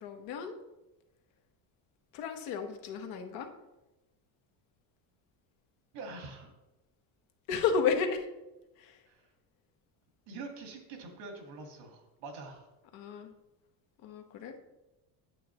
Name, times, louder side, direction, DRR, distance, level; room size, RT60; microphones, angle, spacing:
voice 1, 0.0-0.6 2.1-3.5 7.5-8.3 8.8-9.0 12.9-13.3 14.0-14.6, left 6 dB, 75° left, 5 dB, 1.1 m, -32 dB
voice 2, 5.9-6.5 9.1-9.2 10.3-12.7, right 3 dB, 80° right, 4 dB, 1.8 m, -45 dB
8.9 x 6.6 x 3.0 m, 1.0 s
supercardioid pair, 100°, 47 cm